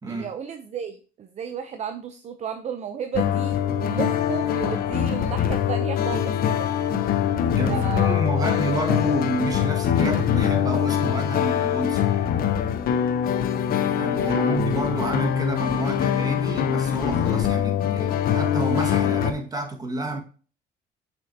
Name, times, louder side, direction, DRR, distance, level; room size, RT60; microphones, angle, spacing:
voice 1, 0.1-6.7 7.7-8.6 14.2-14.6, right 7 dB, 40° right, 0.7 m, -33 dB
sound 1, 3.1-19.3, left 9 dB, 60° left, 0.8 m, -23 dB
voice 2, 7.6-12.1 13.9-20.2, right 2 dB, 20° right, 1.8 m, -29 dB
6.2 x 6.1 x 2.8 m
cardioid pair, 110°, 17 cm